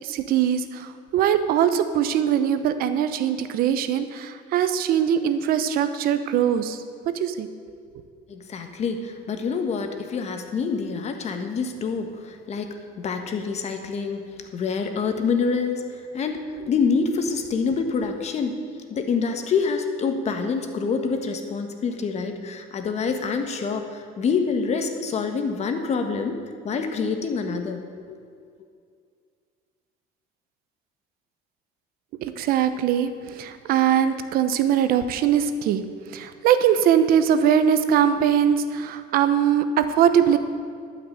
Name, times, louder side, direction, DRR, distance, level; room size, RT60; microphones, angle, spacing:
voice 1, 0.0-7.5 7.9-8.0 32.2-35.8 36.1-40.4, right 9 dB, 65° right, 10 dB, 0.9 m, -21 dB
voice 2, 8.3-12.7 13.0-14.2 14.5-18.6 18.9-26.4 26.6-27.8 28.1-28.2, left 5 dB, 40° left, 6 dB, 1.5 m, -26 dB
12.5 x 5.9 x 9.1 m, 2.2 s
cardioid pair, 115°, 16 cm